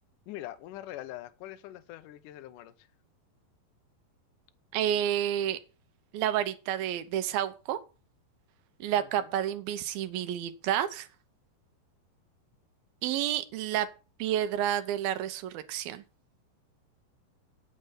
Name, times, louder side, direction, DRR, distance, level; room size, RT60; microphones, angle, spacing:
voice 1, 0.3-2.9 9.0-9.3, left 14 dB, 75° left, 2.2 m, -43 dB
voice 2, 4.7-5.6 6.1-7.8 8.8-11.1 13.0-13.9 14.2-16.0, right 11 dB, 80° right, 2.8 m, -30 dB
9.1 x 8.0 x 5.8 m
omnidirectional pair, 4.2 m